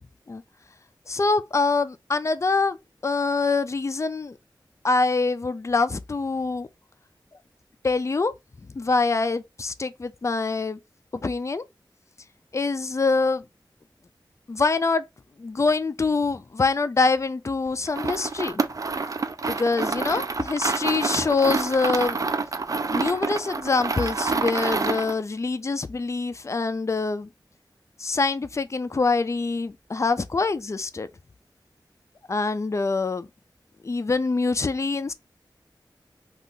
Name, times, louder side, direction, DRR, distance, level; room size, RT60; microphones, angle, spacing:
voice 1, 1.1-2.8 3.0-4.4 4.8-6.7 7.8-8.3 8.7-10.8 11.1-11.6 12.5-13.4 14.5-15.0 15.4-18.6 19.4-22.2 22.9-27.3 28.0-31.1 32.3-33.3 33.8-35.1, left 3 dB, 35° left, 0.4 m, -25 dB
sound 1, 17.9-25.2, right 4 dB, 45° right, 0.4 m, -27 dB
2.6 x 2.4 x 3.6 m
wide cardioid pair, 50°, 8 cm